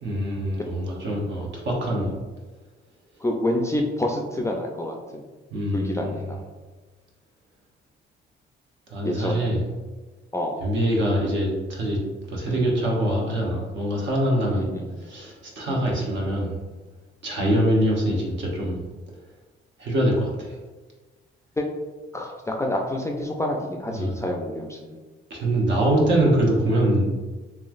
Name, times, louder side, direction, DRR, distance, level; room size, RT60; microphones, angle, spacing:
voice 1, 0.0-2.1 5.5-6.3 8.9-9.6 10.6-12.0 12.3-14.7 15.0-16.6 17.2-18.9 19.8-20.5 23.9-24.1 25.3-27.1, right 1 dB, 65° right, -2 dB, 0.9 m, -24 dB
voice 2, 3.2-5.2 5.7-6.4 9.0-9.5 10.3-10.6 12.5-12.7 14.5-14.9 15.7-15.9 17.4-17.6 21.6-21.7 22.1-25.0 26.6-26.7, left 1 dB, 15° left, 1 dB, 0.3 m, -28 dB
3.0 x 2.3 x 2.4 m, 1.3 s
cardioid pair, 90°, 20 cm